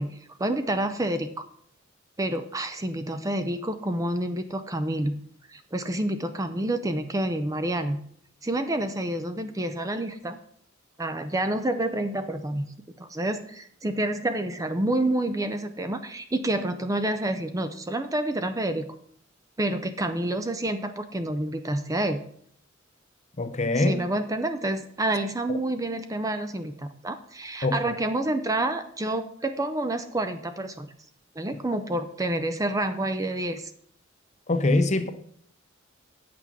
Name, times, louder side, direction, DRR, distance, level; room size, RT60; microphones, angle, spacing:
voice 1, 0.0-1.4 2.2-5.2 5.5-8.0 8.4-10.4 11.0-12.7 13.0-18.9 19.6-22.2 23.8-30.9 31.4-33.7, right 1 dB, 15° right, 9 dB, 0.5 m, -28 dB
voice 2, 23.4-24.0 27.6-27.9 34.5-35.1, left 2 dB, 35° left, 9 dB, 0.7 m, -23 dB
8.4 x 6.0 x 6.0 m, 0.64 s
head